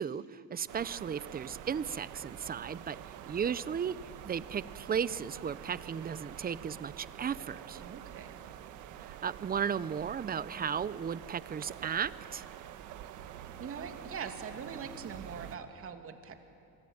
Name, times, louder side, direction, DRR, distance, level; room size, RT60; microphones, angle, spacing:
voice 1, 0.0-3.0 3.3-3.9 4.2-7.8 9.0-12.4, right 7 dB, 30° right, 17 dB, 0.8 m, -35 dB
sound 1, 0.7-15.6, right 10 dB, 75° right, 1.5 m, -47 dB
voice 2, 7.8-8.4 13.6-16.4, right 6 dB, 45° right, 6 dB, 2.7 m, -42 dB
27.5 x 24.0 x 8.9 m, 2.7 s
cardioid pair, 110°, 30 cm